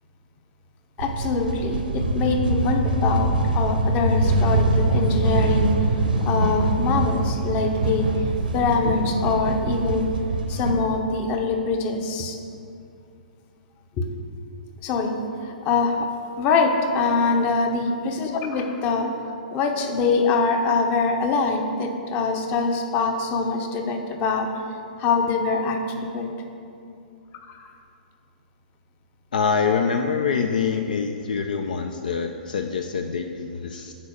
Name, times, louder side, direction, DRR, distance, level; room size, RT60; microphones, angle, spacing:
voice 1, 1.0-5.7 6.3-8.1 8.5-10.1 10.5-12.4 14.0-14.1 14.8-15.1 15.4-16.1 16.4-19.1 19.5-24.5 25.0-26.3 27.5-27.7, left 4 dB, 35° left, 5 dB, 0.9 m, -24 dB
sound 1, 1.0-10.7, right 2 dB, 75° right, 0.9 m, -23 dB
voice 2, 29.3-33.9, left 5 dB, 65° left, 5 dB, 0.5 m, -25 dB
9.7 x 4.3 x 6.4 m, 2.5 s
figure-of-eight pair, 110°, 5 cm